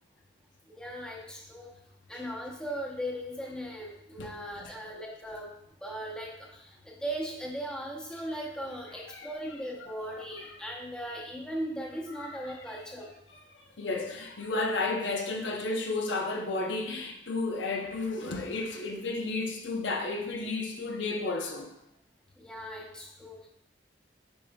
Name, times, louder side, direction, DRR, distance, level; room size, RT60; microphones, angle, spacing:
voice 1, 0.7-1.7 2.1-5.5 5.8-13.1 22.4-23.5, equal, 5° left, 0.9 m, -38 dB
voice 2, 4.2-4.7 8.9-9.3 9.8-10.6 12.1-13.1 13.5-21.7, left 3 dB, 85° left, 0.9 m, -33 dB
7.9 x 5.1 x 2.4 m
head